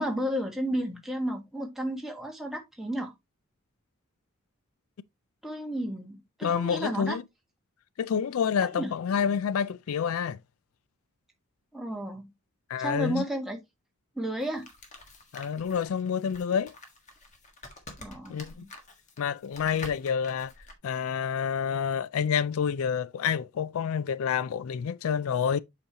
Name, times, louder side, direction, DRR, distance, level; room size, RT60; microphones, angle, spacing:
voice 1, 0.0-3.1 5.4-7.2 8.7-8.9 11.7-12.3 12.8-13.6 14.1-14.7 18.0-18.7, equal, ahead, 1.4 m, -32 dB
voice 2, 6.4-7.2 8.0-10.4 12.7-13.2 15.3-16.7 18.3-18.7 19.2-20.5 20.8-25.6, left 7 dB, 80° left, 0.4 m, -28 dB
sound 1, 14.4-20.8, left 2 dB, 35° left, 1.5 m, -48 dB
7.9 x 5.1 x 2.8 m
head